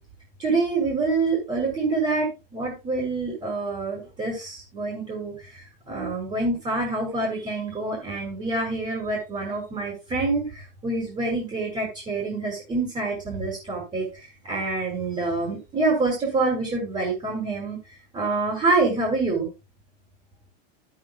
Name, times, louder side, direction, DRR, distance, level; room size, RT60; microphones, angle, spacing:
voice 1, 0.4-17.8 18.1-19.5, right 3 dB, 20° right, -2 dB, 7.7 m, -26 dB
14.0 x 12.0 x 2.4 m, 0.27 s
supercardioid pair, 140°, 29 cm